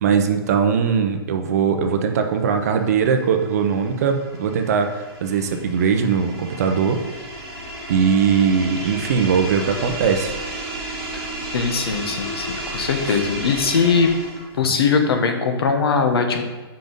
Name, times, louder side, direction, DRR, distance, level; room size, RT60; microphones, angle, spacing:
voice 1, 0.0-7.0 7.9-10.3 13.1-13.2, right 6 dB, 40° right, 6 dB, 0.6 m, -20 dB
sound 1, 2.7-14.6, right 1 dB, 5° left, 1.9 m, -33 dB
voice 2, 11.5-14.1 14.5-16.4, left 5 dB, 70° left, 5 dB, 1.1 m, -20 dB
5.8 x 5.2 x 5.3 m, 1.3 s
hypercardioid pair, 170°, 13 cm